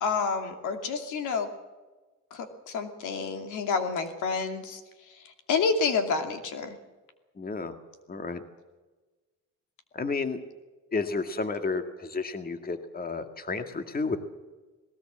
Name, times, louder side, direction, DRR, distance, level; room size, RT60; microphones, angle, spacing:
voice 1, 0.0-1.5 2.3-4.8 5.5-6.8, left 5 dB, 80° left, 6 dB, 2.7 m, -29 dB
voice 2, 7.4-7.8 8.1-8.4 9.9-10.4 10.9-14.2, left 4 dB, 30° left, 7 dB, 1.9 m, -31 dB
20.0 x 18.5 x 7.5 m, 1.2 s
cardioid pair, 90°, 30 cm